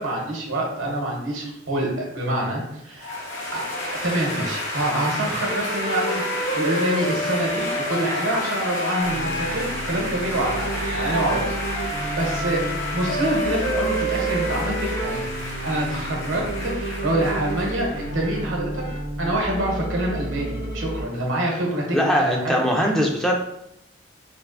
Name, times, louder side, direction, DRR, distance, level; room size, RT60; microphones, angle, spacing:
voice 1, 0.0-3.2 3.5-12.7 12.9-15.2 15.6-18.8 19.2-22.6, right 1 dB, 75° right, -1 dB, 0.9 m, -26 dB
sound 1, 3.0-18.5, left 1 dB, 80° left, 0.7 m, -31 dB
sound 2, 5.5-9.8 10.7-15.3, equal, 45° left, 0.6 m, -30 dB
sound 3, 9.0-21.0, right 1 dB, 60° left, 1.2 m, -31 dB
voice 2, 21.9-23.3, equal, ahead, -1 dB, 0.3 m, -21 dB
3.3 x 2.5 x 2.4 m, 0.81 s
head